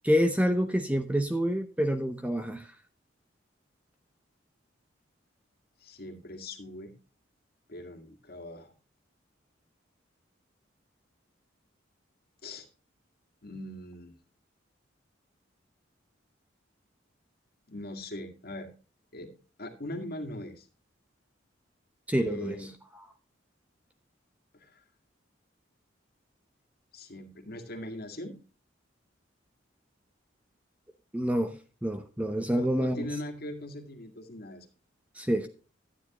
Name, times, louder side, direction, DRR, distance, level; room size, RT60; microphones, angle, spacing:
voice 1, 0.0-2.7 22.1-22.6 31.1-33.1 35.2-35.5, equal, 5° right, 0.8 m, -27 dB
voice 2, 5.8-6.9 7.7-8.7 12.4-12.7 13.4-14.1 17.7-18.7 19.1-19.3 19.6-20.7 22.2-22.7 24.5-24.8 26.9-28.4 32.5-34.7, left 1 dB, 50° left, 2.0 m, -40 dB
12.5 x 9.4 x 3.0 m
head